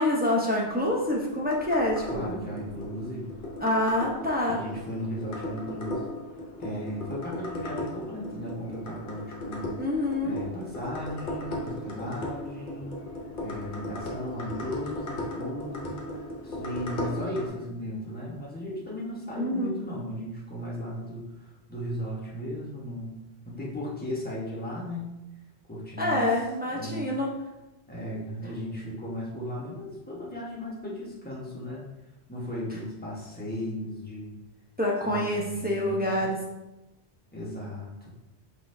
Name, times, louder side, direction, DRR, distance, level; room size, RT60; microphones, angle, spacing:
voice 1, 0.0-2.4 3.6-4.6 9.8-10.4 19.3-19.7 26.0-27.3 34.8-36.4, left 1 dB, 10° right, -4 dB, 0.6 m, -26 dB
sound 1, 0.7-17.5, left 1 dB, 50° left, 0.9 m, -37 dB
voice 2, 2.1-3.3 4.5-6.1 6.6-9.7 10.2-13.0 13.4-23.2 23.4-25.2 25.7-26.2 26.7-27.1 27.9-31.8 32.3-34.3 35.0-36.2 37.3-38.1, equal, 10° left, -6 dB, 1.1 m, -36 dB
4.5 x 3.9 x 2.7 m, 0.97 s
omnidirectional pair, 1.1 m